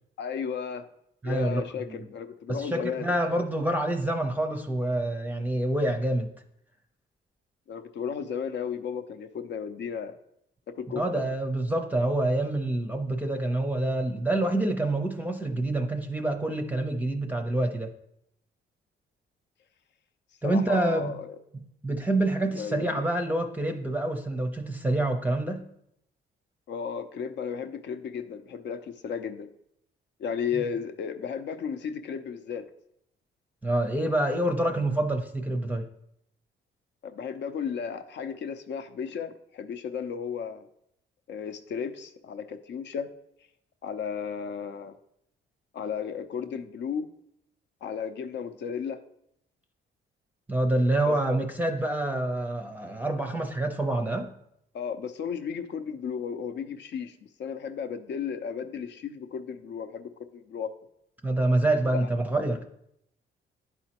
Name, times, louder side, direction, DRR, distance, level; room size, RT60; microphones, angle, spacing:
voice 1, 0.2-0.8 1.2-3.1 7.7-10.1 10.8-11.2 20.4-21.4 22.5-23.0 26.7-29.5 30.2-32.6 37.0-40.7 41.3-43.1 43.8-45.0 45.7-47.1 47.8-49.0 51.1-51.2 54.7-57.1 57.4-60.7 61.9-62.0, left 7 dB, 60° left, 9 dB, 0.6 m, -34 dB
voice 2, 1.2-2.1 2.5-6.3 10.9-17.9 20.4-21.2 21.5-25.6 30.5-30.6 33.6-35.9 50.5-54.3 61.2-62.6, right 1 dB, 10° right, 4 dB, 0.6 m, -27 dB
10.5 x 4.2 x 2.9 m, 0.76 s
cardioid pair, 90°, 20 cm